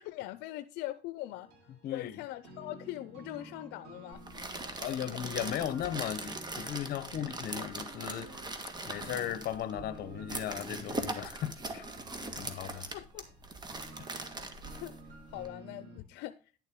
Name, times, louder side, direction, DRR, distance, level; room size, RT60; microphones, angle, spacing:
voice 1, 0.0-1.5 1.9-4.2 5.1-5.3 12.5-13.3 14.1-14.4 14.7-15.0 15.3-16.4, left 15 dB, 85° left, 0.5 m, -42 dB
sound 1, 1.3-16.0, right 1 dB, 80° right, 4.0 m, -52 dB
voice 2, 1.8-2.2 4.8-8.5 8.9-11.9 12.4-12.9, left 10 dB, 65° left, 0.9 m, -37 dB
sound 2, 4.1-15.5, right 2 dB, 25° right, 1.7 m, -41 dB
10.5 x 7.3 x 3.7 m
cardioid pair, 110°, 17 cm